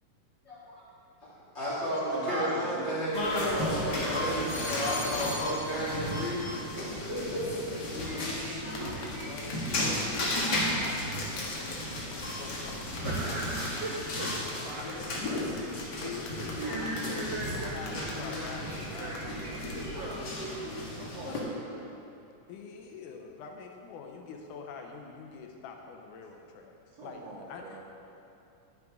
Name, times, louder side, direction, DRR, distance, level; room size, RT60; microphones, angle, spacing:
voice 1, 1.5-7.6 8.1-8.2, equal, 25° left, -8 dB, 2.2 m, -33 dB
voice 2, 2.1-3.0 4.3-4.8 13.0-15.7 16.0-16.1 16.4-20.2 21.0-21.9 27.0-27.8, right 2 dB, 70° right, -4 dB, 1.6 m, -39 dB
sound 1, 3.1-21.4, left 1 dB, 45° left, 1.4 m, -34 dB
sound 2, 8.1-20.2, right 2 dB, 50° right, 2.1 m, -51 dB
sound 3, 8.7-19.8, left 3 dB, 60° left, 2.2 m, -44 dB
voice 3, 8.8-13.3 15.9-19.4 19.7-20.1 22.5-26.8 27.0-27.8, left 5 dB, 80° left, 3 dB, 2.1 m, -45 dB
11.0 x 9.8 x 3.6 m, 2.7 s
omnidirectional pair, 3.8 m